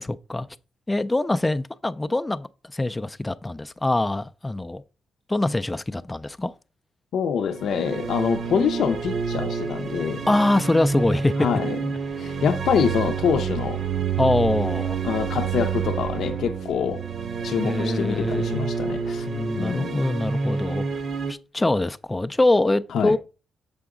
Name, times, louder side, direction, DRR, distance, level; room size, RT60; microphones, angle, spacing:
voice 1, 0.9-4.8 5.3-6.5 10.3-11.3 14.2-15.0 17.6-18.7 19.3-20.9 21.3-23.2, left 2 dB, 15° left, 0.3 m, -24 dB
voice 2, 7.1-10.3 11.4-11.8 12.2-13.8 15.0-17.0 17.4-19.3 19.6-20.0 22.9-23.1, left 7 dB, 75° left, 0.5 m, -25 dB
sound 1, 7.5-21.3, right 6 dB, 65° right, 0.7 m, -28 dB
7.0 x 4.8 x 3.7 m
cardioid pair, 110°, 0 cm